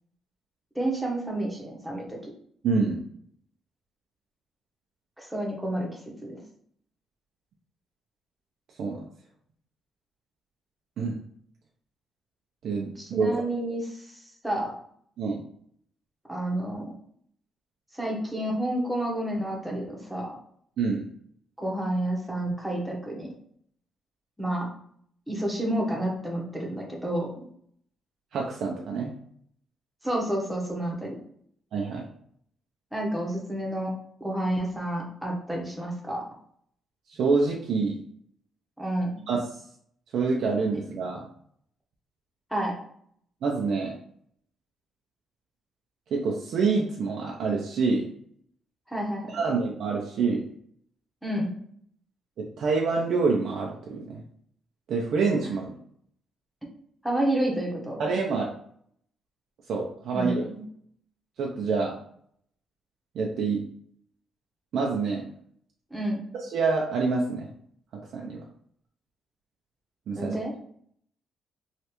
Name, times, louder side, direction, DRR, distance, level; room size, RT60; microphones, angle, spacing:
voice 1, 0.7-2.3 5.2-5.9 6.2-6.4 13.0-13.9 14.4-14.7 16.3-16.9 17.9-20.3 21.6-23.3 24.4-24.7 25.3-27.4 30.0-31.1 32.9-33.9 34.2-36.2 38.8-39.1 42.5-42.7 48.9-49.4 51.2-51.5 57.0-58.0 60.1-60.6 65.9-66.2 70.1-70.5, right 1 dB, 5° right, -2 dB, 1.0 m, -29 dB
voice 2, 2.6-3.0 8.8-9.0 11.0-11.1 12.6-13.4 15.2-15.4 20.8-21.1 28.3-29.1 31.7-32.1 37.1-38.0 39.3-39.4 40.1-41.2 43.4-44.0 46.1-48.0 49.3-50.4 52.4-54.2 54.9-55.8 58.0-58.5 59.7-60.5 61.4-61.9 63.1-63.6 64.7-65.2 66.4-67.5 68.1-68.4 70.1-70.3, right 4 dB, 70° right, -1 dB, 0.5 m, -26 dB
3.2 x 2.4 x 2.9 m, 0.65 s
cardioid pair, 90°, 0 cm